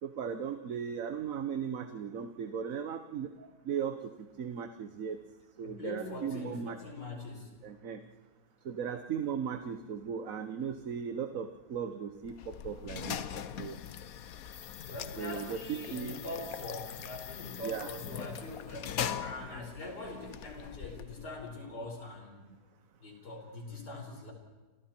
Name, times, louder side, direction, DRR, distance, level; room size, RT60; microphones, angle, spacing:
voice 1, 0.0-4.0 4.4-5.2 5.6-6.8 7.6-8.0 8.6-13.8 15.2-16.2 17.6-17.9, right 7 dB, 55° right, 8 dB, 1.4 m, -37 dB
voice 2, 5.6-7.5 14.9-18.9 19.2-22.4 23.0-24.3, left 2 dB, 80° left, 1 dB, 5.7 m, -43 dB
sound 1, 12.2-21.5, left 9 dB, 60° left, 1.3 m, -41 dB
30.0 x 27.5 x 4.5 m, 1.3 s
omnidirectional pair, 1.7 m